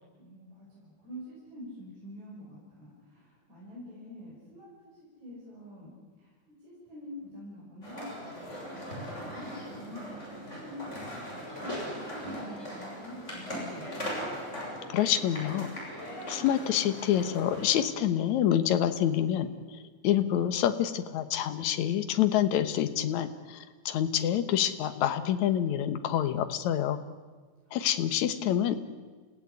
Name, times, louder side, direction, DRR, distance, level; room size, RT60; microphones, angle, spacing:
voice 1, 0.2-5.9 6.2-6.3 6.6-8.1 8.4-14.0 27.7-28.5, left 1 dB, 60° right, -5 dB, 6.7 m, -46 dB
sound 1, 7.8-17.8, equal, 20° left, 7.0 m, -39 dB
voice 2, 14.9-15.7 16.3-19.8 20.0-27.0 27.7-28.8, left 10 dB, 70° left, 9 dB, 2.5 m, -27 dB
28.5 x 16.5 x 9.6 m, 1.4 s
omnidirectional pair, 3.6 m